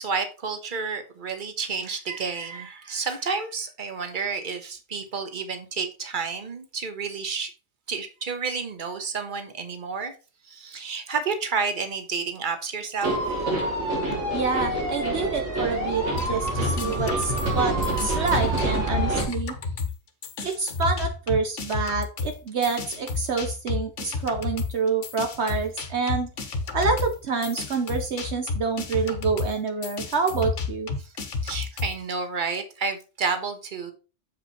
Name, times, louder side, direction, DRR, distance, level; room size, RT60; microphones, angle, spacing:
voice 1, 0.0-7.5 7.9-10.1 10.5-13.2 31.0-31.1 31.4-33.9, right 5 dB, 45° right, 1.4 m, -30 dB
sound 1, 13.0-19.2, right 1 dB, 90° right, 4.1 m, -26 dB
voice 2, 14.3-19.5 20.4-26.3 26.7-30.9, right 4 dB, 70° right, 1.2 m, -27 dB
sound 2, 16.1-20.0 20.2-32.0, left 4 dB, 85° left, 1.5 m, -31 dB
7.9 x 5.3 x 4.2 m
omnidirectional pair, 1.2 m